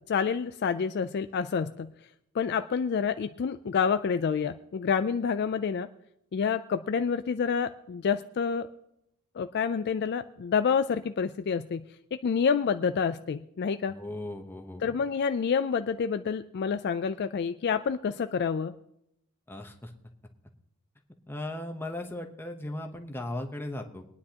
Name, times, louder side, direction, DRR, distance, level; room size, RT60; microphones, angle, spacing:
voice 1, 0.1-1.9 2.3-5.9 6.3-8.7 9.4-11.9 12.1-13.9 14.8-18.7, left 6 dB, 50° left, 10 dB, 0.3 m, -28 dB
voice 2, 13.9-15.0 19.5-19.9 21.3-24.1, left 1 dB, 10° left, 4 dB, 0.9 m, -37 dB
22.5 x 9.7 x 2.9 m, 0.79 s
head